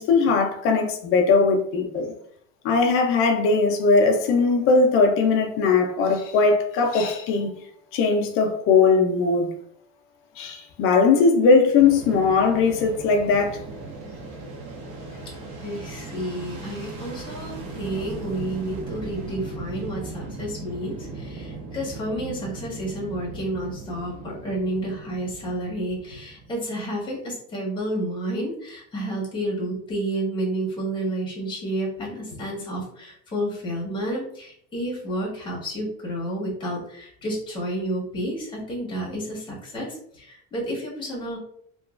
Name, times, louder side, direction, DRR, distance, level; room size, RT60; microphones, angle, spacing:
voice 1, 0.0-2.1 2.6-7.5 7.9-9.5 10.4-13.6, left 4 dB, 40° left, 0.4 m, -19 dB
Fixed-wing aircraft airplane, 11.8-26.9, right 3 dB, 70° right, 1.0 m, -38 dB
voice 2, 15.6-41.4, right 1 dB, 15° left, 0.8 m, -30 dB
2.9 x 2.3 x 2.3 m
cardioid pair, 165°, 33 cm